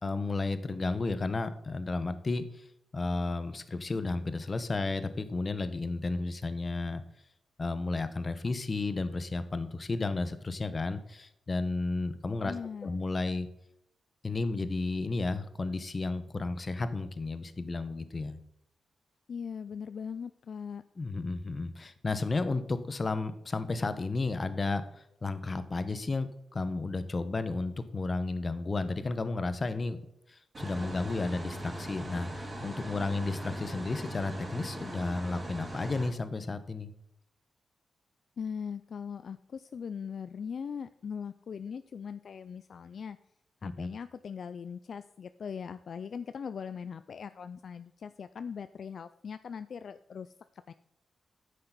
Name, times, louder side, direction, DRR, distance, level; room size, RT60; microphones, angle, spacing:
voice 1, 0.0-2.7 2.9-7.0 7.6-12.5 12.8-13.5 14.2-18.4 21.0-30.0 30.3-36.9 43.6-43.9, left 3 dB, 40° left, 12 dB, 0.9 m, -33 dB
voice 2, 12.4-13.0 19.3-20.8 38.4-43.2 43.6-50.7, left 6 dB, 65° left, 12 dB, 0.3 m, -40 dB
sound 1, 30.5-36.1, right 1 dB, 40° right, 3.7 m, -40 dB
9.8 x 6.6 x 4.0 m, 0.80 s
cardioid pair, 75°, 0 cm